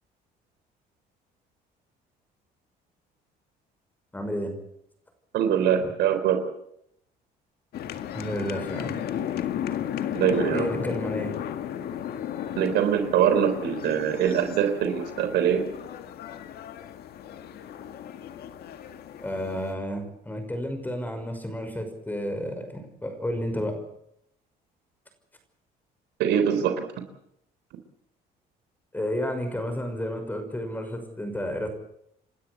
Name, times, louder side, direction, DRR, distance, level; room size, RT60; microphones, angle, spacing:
voice 1, 4.1-4.6 5.8-5.9 8.1-9.0 10.5-11.3 19.2-23.8 28.9-31.7, equal, 10° left, 7 dB, 5.9 m, -31 dB
voice 2, 5.3-6.4 10.1-10.7 12.6-15.6 26.2-26.8, right 9 dB, 80° right, 8 dB, 3.8 m, -23 dB
sound 1, 7.7-19.7, left 10 dB, 70° left, 1.9 m, -34 dB
29.5 x 13.0 x 8.4 m, 0.75 s
cardioid pair, 110°, 17 cm